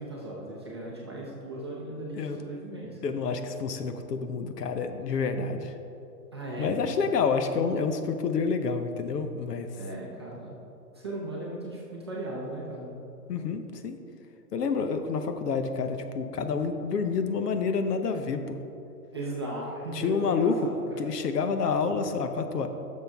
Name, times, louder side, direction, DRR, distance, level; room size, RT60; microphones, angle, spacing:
voice 1, 0.0-3.0 6.3-6.9 9.8-10.6 10.9-12.9 19.1-21.0, right 1 dB, 15° right, -6 dB, 0.5 m, -37 dB
voice 2, 3.0-5.7 6.6-9.7 13.3-14.0 14.5-18.6 19.9-20.6 21.0-22.7, left 5 dB, 75° left, 7 dB, 1.0 m, -28 dB
11.0 x 6.6 x 3.5 m, 2.8 s
hypercardioid pair, 175°, 48 cm